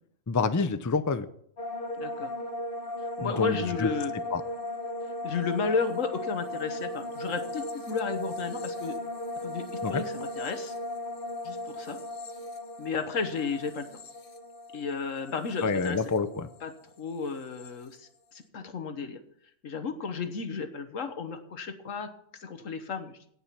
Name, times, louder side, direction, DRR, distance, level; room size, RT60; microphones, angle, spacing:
voice 1, 0.3-1.3 3.2-3.9 4.3-4.4 9.8-10.0 15.6-16.5, left 4 dB, 25° left, 11 dB, 0.4 m, -28 dB
sound 1, 1.6-16.8 17.1-17.7, left 1 dB, 50° left, 1.2 m, -37 dB
voice 2, 2.0-2.3 3.2-4.1 5.2-8.9 9.4-10.7 11.4-12.0 12.8-13.9 14.7-16.0 16.6-19.2 19.6-22.1 22.4-23.1, left 5 dB, 85° left, 8 dB, 1.6 m, -33 dB
17.5 x 5.8 x 5.8 m, 0.67 s
omnidirectional pair, 1.3 m